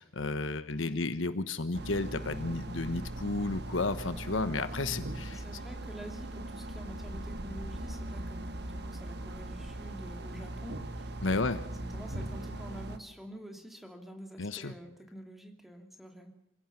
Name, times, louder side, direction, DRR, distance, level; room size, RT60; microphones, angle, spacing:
voice 1, 0.0-5.4 11.2-11.6 14.4-14.7, left 3 dB, 70° left, 11 dB, 1.2 m, -32 dB
sound 1, 1.7-13.0, right 1 dB, 55° right, 1.5 m, -40 dB
voice 2, 5.1-16.3, equal, ahead, 3 dB, 3.0 m, -48 dB
27.5 x 17.0 x 5.8 m, 0.83 s
head